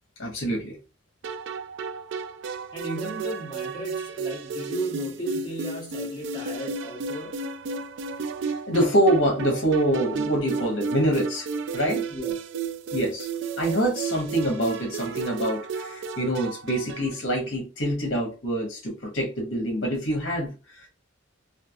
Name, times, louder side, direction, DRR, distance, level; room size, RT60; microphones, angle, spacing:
voice 1, 0.2-0.8 8.5-11.5 11.7-12.1 12.9-13.3 13.6-20.9, right 1 dB, 60° left, 1.0 m, -25 dB
sound 1, 1.2-17.2, right 5 dB, 60° right, 0.3 m, -33 dB
voice 2, 2.7-7.4 12.1-12.4, right 1 dB, 20° left, 1.1 m, -35 dB
3.3 x 2.4 x 2.3 m
head